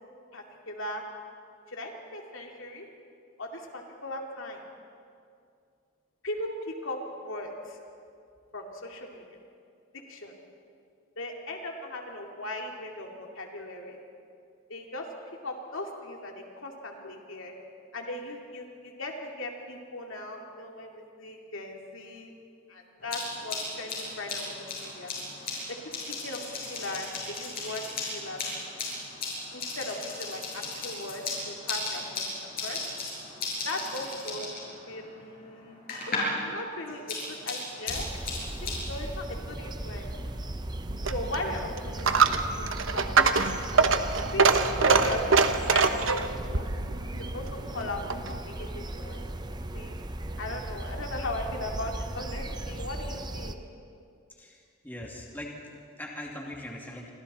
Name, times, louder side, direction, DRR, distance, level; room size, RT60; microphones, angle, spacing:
voice 1, 0.3-1.0 1.7-2.9 3.4-4.6 6.2-7.8 8.5-9.2 10.1-10.3 11.2-14.0 14.7-15.1 15.4-17.5 17.9-22.3 22.7-25.1 25.7-27.8 28.1-28.4 29.5-32.3 32.6-32.8 33.6-34.5 34.9-38.1 38.6-40.2 41.1-42.2 42.9-44.0 44.3-45.2 45.5-46.2 46.5-46.6 47.3-47.5 47.7-49.3 49.7-49.9 50.4-53.6, left 1 dB, 70° left, 1 dB, 2.6 m, -38 dB
sound 1, 23.0-36.4 36.7-38.8, left 3 dB, 40° left, 7.3 m, -36 dB
sound 2, 37.9-53.5, right 1 dB, 20° right, 0.8 m, -37 dB
Coin (dropping), 40.9-48.4, right 4 dB, 65° right, 1.0 m, -25 dB
voice 2, 54.3-57.1, left 1 dB, 10° left, -2 dB, 2.6 m, -41 dB
29.5 x 24.5 x 4.4 m, 2.4 s
head